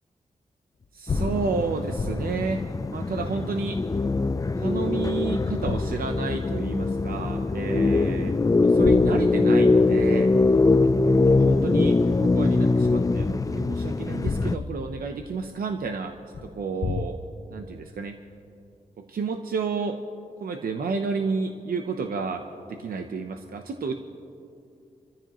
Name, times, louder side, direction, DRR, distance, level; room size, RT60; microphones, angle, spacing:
sound 1, 0.8-4.9 5.5-6.8 7.3-7.4 8.6-12.2 12.8-17.0, left 4 dB, 50° left, 0.8 m, -35 dB
voice 1, 0.9-2.6 2.9-3.8 4.6-10.3 11.3-16.1 16.4-17.2 17.5-18.2 19.0-20.0 20.4-23.9, right 4 dB, 85° right, 4 dB, 0.8 m, -31 dB
sound 2, 1.1-14.6, left 3 dB, 25° left, 0.4 m, -22 dB
27.5 x 14.0 x 3.0 m, 2.5 s
cardioid pair, 60°, 15 cm